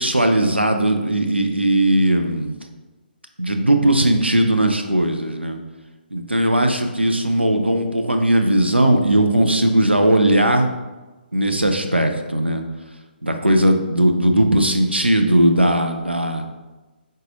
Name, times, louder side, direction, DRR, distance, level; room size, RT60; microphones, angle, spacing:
voice 1, 0.0-2.5 3.4-5.6 6.1-10.7 11.3-12.6 13.2-16.4, right 1 dB, 90° right, 5 dB, 0.6 m, -18 dB
4.9 x 3.9 x 2.7 m, 1.2 s
figure-of-eight pair, 135°, 6 cm